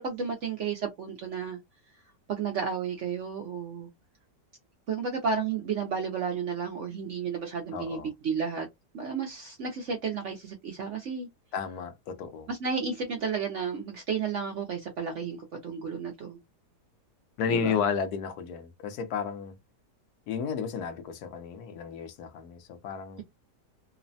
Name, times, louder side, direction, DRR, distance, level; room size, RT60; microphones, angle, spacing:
voice 1, 0.0-1.6 2.3-3.9 4.9-8.7 8.9-11.3 12.5-15.4 15.6-16.4 17.5-17.8, right 6 dB, 65° right, 0.7 m, -32 dB
voice 2, 7.7-8.1 11.5-12.5 17.4-19.5 20.3-23.2, left 7 dB, 70° left, 1.1 m, -32 dB
3.1 x 2.1 x 2.5 m
omnidirectional pair, 1.8 m